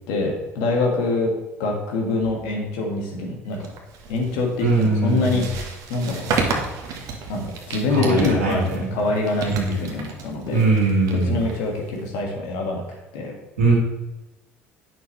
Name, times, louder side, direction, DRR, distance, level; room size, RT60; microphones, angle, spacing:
voice 1, 0.1-1.3 1.6-3.7 4.1-6.4 7.3-10.7 11.3-12.8 13.1-13.3, left 3 dB, 65° left, 0 dB, 1.8 m, -25 dB
sound 1, 3.5-12.2, right 4 dB, 55° right, 1.3 m, -32 dB
voice 2, 4.6-5.4 7.9-9.0 9.5-9.8 10.5-11.4 13.6-13.7, right 3 dB, 85° right, -4 dB, 2.5 m, -21 dB
8.8 x 6.5 x 3.2 m, 0.98 s
figure-of-eight pair, 60°, 7 cm